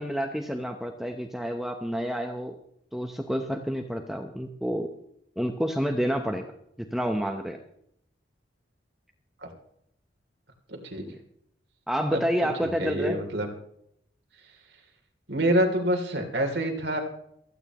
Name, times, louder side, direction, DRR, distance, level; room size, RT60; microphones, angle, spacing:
voice 1, 0.0-2.5 2.9-4.9 5.4-6.5 6.8-7.6 11.9-13.2, equal, ahead, 3 dB, 0.8 m, -29 dB
voice 2, 10.7-11.0 12.1-12.2 12.6-13.5 15.3-17.0, right 1 dB, 65° right, 3 dB, 3.0 m, -26 dB
28.0 x 9.4 x 3.0 m, 0.73 s
head